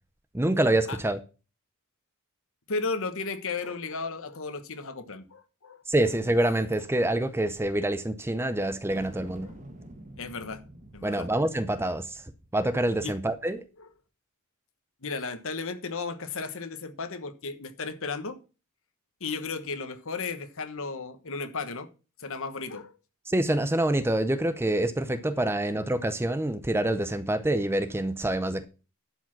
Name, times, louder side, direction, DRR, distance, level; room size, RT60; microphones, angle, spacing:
voice 1, 0.3-1.2 5.9-9.5 11.0-12.2 12.5-13.6 23.3-28.6, right 1 dB, 10° right, 0.6 m, -26 dB
voice 2, 2.7-5.8 9.4-9.5 10.2-10.6 10.9-11.3 13.0-13.1 13.8-13.9 15.0-18.4 19.2-21.9 22.2-22.9, left 4 dB, 65° left, 1.2 m, -34 dB
sound 1, 8.9-13.6, right 1 dB, 35° right, 1.8 m, -48 dB
12.0 x 4.9 x 5.9 m
head